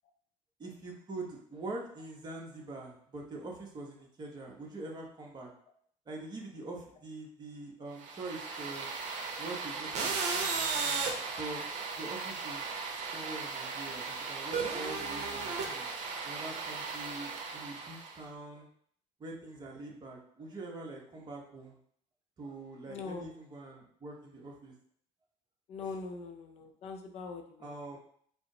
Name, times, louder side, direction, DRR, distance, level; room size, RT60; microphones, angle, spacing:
voice 1, 0.6-5.5 6.1-8.9 9.4-10.2 11.2-11.6 12.0-12.6 13.1-15.9 16.2-18.7 19.2-21.8 22.4-24.7 25.8-26.0 27.6-28.0, right 2 dB, 35° right, -1 dB, 1.0 m, -44 dB
sound 1, 8.0-18.2, right 4 dB, 65° right, 0.8 m, -36 dB
voice 2, 22.9-23.3 25.7-28.0, left 4 dB, 55° left, 5 dB, 0.6 m, -42 dB
4.7 x 2.0 x 3.8 m, 0.62 s
cardioid pair, 110°, 13 cm